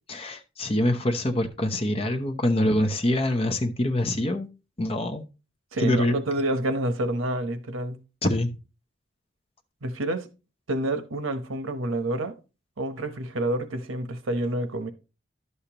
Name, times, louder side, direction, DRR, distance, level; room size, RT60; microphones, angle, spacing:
voice 1, 0.1-4.5 4.8-5.2 5.8-6.2 8.2-8.5, left 1 dB, 30° left, 0.7 m, -25 dB
voice 2, 5.7-8.0 9.8-10.3 10.7-12.3 12.8-14.9, right 1 dB, 85° right, 0.9 m, -28 dB
11.0 x 6.7 x 2.9 m
head